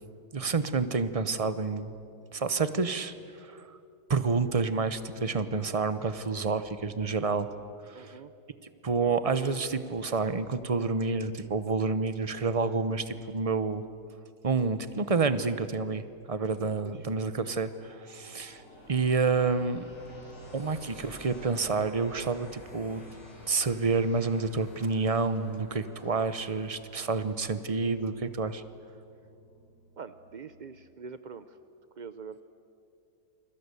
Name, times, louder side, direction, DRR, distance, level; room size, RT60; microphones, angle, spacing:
voice 1, 0.3-1.9 2.3-3.1 3.5-3.6 4.1-7.5 7.9-8.1 8.8-13.8 14.4-18.6 18.9-19.8 20.5-23.0 23.5-28.6, right 4 dB, 30° right, 12 dB, 0.7 m, -29 dB
voice 2, 7.9-8.3 16.6-16.9 30.0-31.6 32.0-32.4, right 5 dB, 65° right, 11 dB, 0.4 m, -44 dB
sound 1, 17.7-30.8, left 1 dB, 85° left, 5.1 m, -51 dB
28.5 x 22.5 x 8.3 m, 2.6 s
omnidirectional pair, 1.8 m